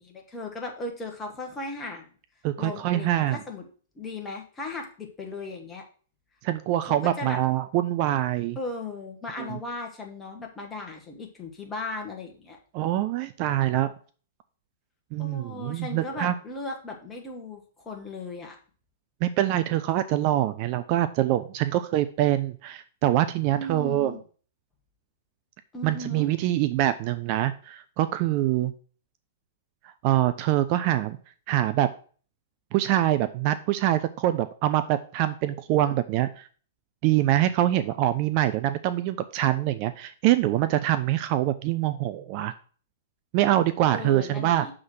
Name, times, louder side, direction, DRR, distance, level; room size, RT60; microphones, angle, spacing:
voice 1, 0.0-2.1 2.6-3.7 3.9-5.8 6.9-7.4 8.5-12.6 15.2-18.6 23.5-24.2 25.7-26.3 43.9-44.7, left 2 dB, 15° left, 2 dB, 1.4 m, -37 dB
voice 2, 2.4-3.4 6.4-8.6 9.4-9.6 12.7-13.9 15.1-16.3 19.2-24.1 25.8-28.7 30.0-31.2 31.5-31.9 32.7-36.5 37.0-42.5 43.3-44.7, right 13 dB, 40° right, 12 dB, 0.3 m, -24 dB
6.3 x 3.7 x 6.0 m, 0.42 s
figure-of-eight pair, 105°, 0 cm